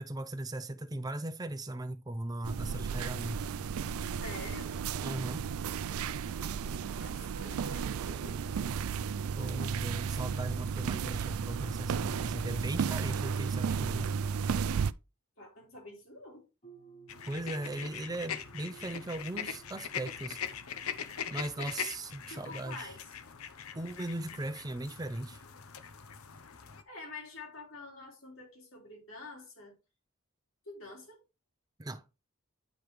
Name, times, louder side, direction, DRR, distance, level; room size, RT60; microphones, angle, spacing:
voice 1, 0.0-3.4 5.0-5.4 9.4-14.1 17.3-20.4 21.3-22.9 23.7-25.4 31.8-32.0, right 1 dB, 20° right, 0.6 m, -38 dB
sound 1, 2.4-14.9, right 6 dB, 85° right, 0.4 m, -34 dB
voice 2, 4.1-4.8 7.0-8.8 15.4-16.5 22.3-23.0 26.6-29.8 30.7-31.2, left 2 dB, 70° left, 3.5 m, -47 dB
sound 2, 16.6-21.8, right 6 dB, 35° left, 1.4 m, -56 dB
sound 3, 17.1-26.8, left 8 dB, 90° left, 0.8 m, -42 dB
9.2 x 5.2 x 3.2 m
head